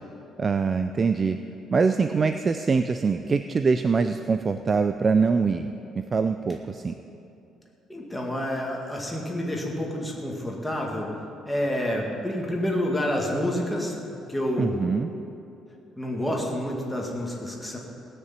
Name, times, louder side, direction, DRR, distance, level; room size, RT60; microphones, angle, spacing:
voice 1, 0.4-1.4 1.7-5.7 6.1-6.9 14.6-15.1, right 5 dB, 25° right, 9 dB, 0.4 m, -23 dB
voice 2, 7.9-11.1 11.5-14.9 16.0-17.8, left 1 dB, 5° left, -2 dB, 2.2 m, -28 dB
17.5 x 6.7 x 8.9 m, 2.8 s
cardioid pair, 150°, 0 cm